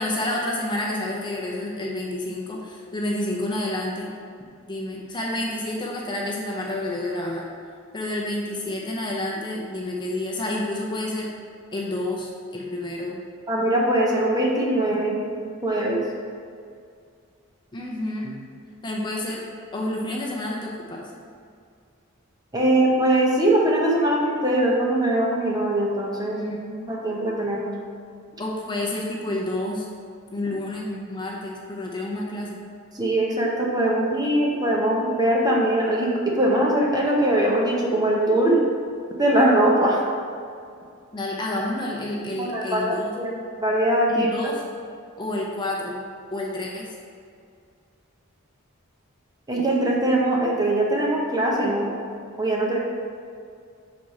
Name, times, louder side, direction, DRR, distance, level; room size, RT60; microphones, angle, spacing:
voice 1, 0.0-4.1 4.7-7.5 7.9-11.3 11.7-13.2 17.7-18.4 18.8-19.4 19.7-21.1 26.3-26.9 28.4-29.9 30.3-32.6 41.1-43.1 44.1-44.6 45.2-46.0 46.3-46.9, left 1 dB, 20° left, -2 dB, 0.6 m, -29 dB
voice 2, 13.5-16.0 22.5-26.4 26.9-27.7 32.9-38.6 39.2-40.0 42.4-44.3 49.5-51.9 52.4-52.8, right 1 dB, 15° right, -2 dB, 0.7 m, -21 dB
6.1 x 4.1 x 4.7 m, 2.3 s
head